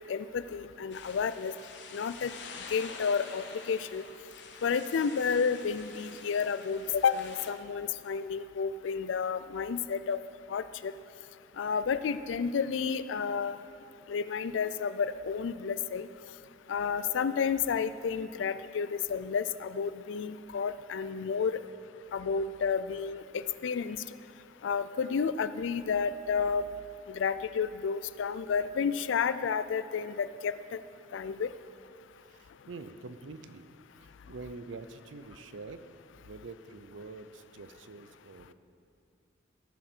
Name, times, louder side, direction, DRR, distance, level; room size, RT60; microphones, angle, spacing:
voice 1, 0.1-1.5 1.9-2.3 2.7-4.0 4.6-10.2 10.5-10.9 11.6-13.6 14.1-16.1 16.7-21.6 22.1-24.0 24.6-26.6 27.1-30.5 31.1-31.5, left 6 dB, 85° left, 14 dB, 0.4 m, -31 dB
sound 1, 0.9-7.5, left 5 dB, 65° left, 0.8 m, -47 dB
voice 2, 32.3-33.7 33.9-35.8 36.2-38.5, right 3 dB, 85° right, 11 dB, 0.6 m, -46 dB
16.5 x 7.3 x 4.5 m, 2.6 s
head